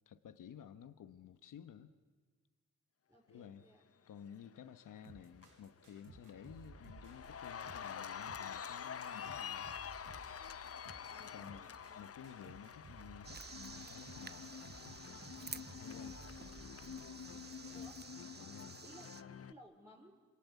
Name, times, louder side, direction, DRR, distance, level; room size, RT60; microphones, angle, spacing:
voice 1, 0.1-1.9 3.3-3.6 4.1-9.7 10.9-11.6 11.9-14.5 15.7-16.2 18.3-18.8, left 9 dB, 85° left, 11 dB, 1.1 m, -54 dB
voice 2, 3.1-3.8 11.1-12.0 15.9-16.2 17.7-18.0 18.8-20.2, equal, 10° right, -2 dB, 3.8 m, -60 dB
Cheering, 4.7-5.1 5.4-19.5, left 7 dB, 50° left, 0.9 m, -48 dB
sound 1, 5.0-17.8, right 2 dB, 85° right, 5.5 m, -58 dB
sound 2, 13.2-19.2, right 5 dB, 30° right, 1.0 m, -52 dB
27.5 x 26.0 x 8.2 m, 1.5 s
cardioid pair, 85°, 31 cm